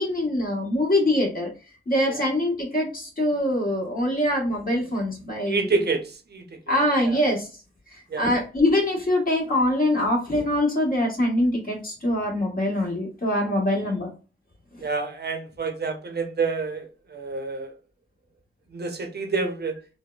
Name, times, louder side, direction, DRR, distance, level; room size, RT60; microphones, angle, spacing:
voice 1, 0.0-1.5 1.9-5.8 6.7-7.5 8.2-14.1, left 1 dB, 45° left, 1.3 m, -23 dB
voice 2, 5.5-6.0 6.3-6.4 7.0-7.2 8.1-8.4 14.8-16.8 17.1-17.7 18.7-19.7, right 4 dB, 50° right, 0.6 m, -27 dB
3.3 x 2.1 x 2.3 m
cardioid pair, 55°, 21 cm